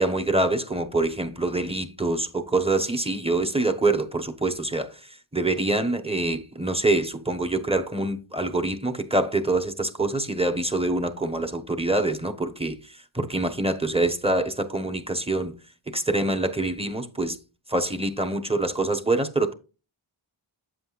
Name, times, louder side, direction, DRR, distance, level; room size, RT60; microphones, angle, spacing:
voice 1, 0.0-15.6 15.9-17.4 17.7-19.5, right 2 dB, 10° right, 1.2 m, -25 dB
9.3 x 7.7 x 2.5 m
wide cardioid pair, 55°, 48 cm